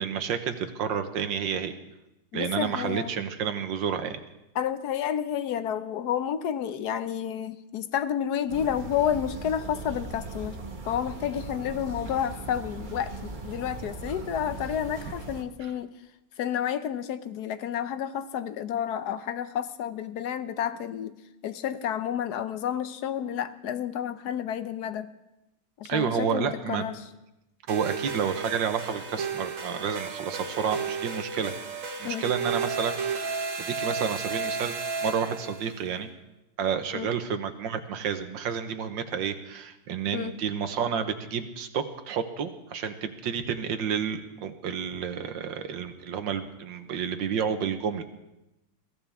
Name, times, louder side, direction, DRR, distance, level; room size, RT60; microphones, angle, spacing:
voice 1, 0.0-1.7 2.3-4.2 25.9-26.8 27.7-31.5 32.0-33.0 33.2-34.8 35.0-36.1 36.6-48.0, right 7 dB, 70° right, 8 dB, 1.7 m, -30 dB
voice 2, 2.3-3.1 4.5-10.6 10.9-15.9 16.4-21.1 21.4-25.1 25.8-27.0 32.0-32.3 36.9-37.1 40.1-40.3, left 9 dB, 65° left, 12 dB, 1.1 m, -30 dB
sound 1, 8.5-15.4, right 3 dB, 30° right, 1.1 m, -39 dB
sound 2, 27.7-35.8, right 5 dB, 45° right, 1.3 m, -33 dB
22.5 x 15.5 x 3.5 m, 0.92 s
omnidirectional pair, 2.1 m